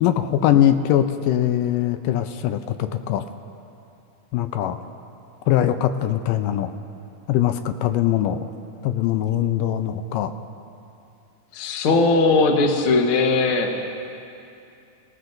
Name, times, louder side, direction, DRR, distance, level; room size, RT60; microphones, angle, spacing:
voice 1, 0.0-3.2 4.3-4.8 5.5-6.7 7.3-8.4 8.8-10.3, left 11 dB, 80° left, 8 dB, 2.2 m, -21 dB
voice 2, 11.5-13.8, left 3 dB, 60° left, 3 dB, 1.5 m, -19 dB
28.0 x 18.0 x 2.6 m, 2.6 s
omnidirectional pair, 3.9 m